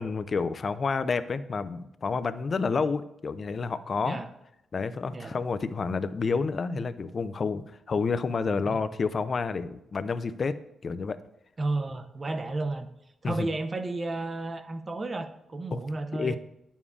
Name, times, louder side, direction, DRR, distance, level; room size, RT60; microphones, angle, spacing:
voice 1, 0.0-4.2 4.7-10.6 10.8-11.2 13.2-13.5 15.7-15.8 16.2-16.4, left 4 dB, 40° left, 13 dB, 0.4 m, -29 dB
voice 2, 11.6-12.9 13.2-16.4, right 2 dB, 30° right, 8 dB, 0.6 m, -32 dB
9.8 x 7.1 x 2.4 m, 0.83 s
cardioid pair, 120°, 0 cm